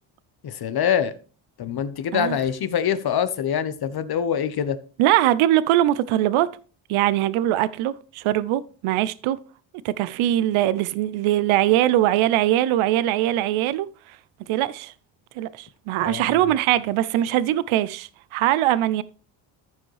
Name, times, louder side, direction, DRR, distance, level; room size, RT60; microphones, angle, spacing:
voice 1, 0.4-1.1 1.6-4.8 16.0-16.5, left 8 dB, 50° left, 1.0 m, -25 dB
voice 2, 5.0-6.5 6.9-9.4 9.8-13.9 14.5-14.9 15.4-19.0, right 13 dB, 80° right, 0.6 m, -21 dB
14.5 x 5.1 x 3.2 m
cardioid pair, 95°, 48 cm